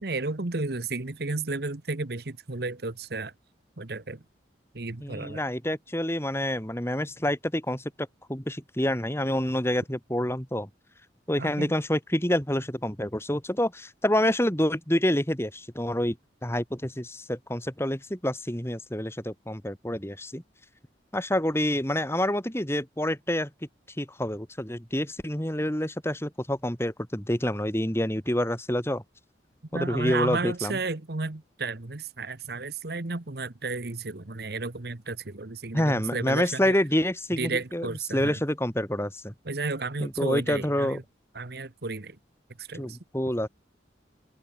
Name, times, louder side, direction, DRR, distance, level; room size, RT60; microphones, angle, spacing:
voice 1, 0.0-3.3 3.8-4.2 4.7-5.4 11.4-11.8 29.7-36.8 37.3-38.4 39.4-41.0 41.3-42.2 42.6-43.0, right 3 dB, 55° right, 1.2 m, -33 dB
voice 2, 5.0-7.9 8.3-10.7 11.3-16.2 16.4-20.4 21.1-23.5 24.0-29.0 29.7-30.8 35.7-39.3 40.0-41.0 42.7-43.5, left 1 dB, 15° left, 2.9 m, -27 dB
open air
head